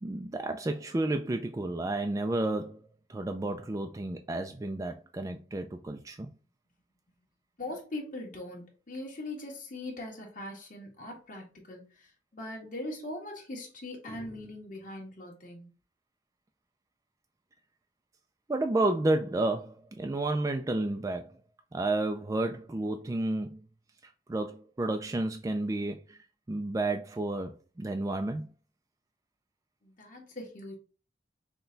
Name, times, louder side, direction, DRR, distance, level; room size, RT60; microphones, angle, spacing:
voice 1, 0.0-6.3 18.5-21.4 21.7-23.6 24.3-26.2 26.5-28.5, right 2 dB, 20° right, 0.3 m, -31 dB
voice 2, 7.6-15.7 29.8-30.7, left 1 dB, 50° left, 1.6 m, -41 dB
5.9 x 2.2 x 3.8 m
head